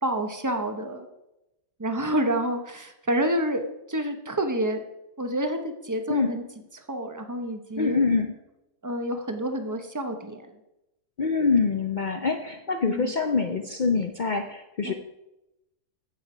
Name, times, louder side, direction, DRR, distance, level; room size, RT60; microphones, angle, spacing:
voice 1, 0.0-1.1 1.8-4.8 5.2-6.4 6.7-8.0 8.8-10.5 12.9-13.1 14.8-14.9, right 1 dB, 20° right, 6 dB, 0.5 m, -28 dB
voice 2, 7.8-8.3 11.2-14.9, left 4 dB, 75° left, 5 dB, 0.4 m, -25 dB
9.5 x 8.3 x 4.9 m, 0.91 s
omnidirectional pair, 1.8 m